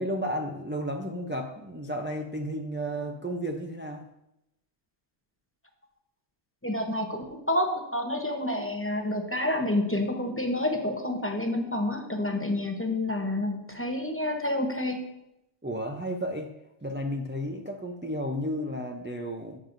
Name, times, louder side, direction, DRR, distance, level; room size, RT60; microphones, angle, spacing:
voice 1, 0.0-4.1 15.6-16.5 16.8-19.6, equal, 20° right, 2 dB, 0.3 m, -33 dB
voice 2, 6.6-15.0, left 1 dB, 15° left, 3 dB, 0.8 m, -29 dB
14.0 x 7.4 x 2.6 m, 0.86 s
omnidirectional pair, 1.2 m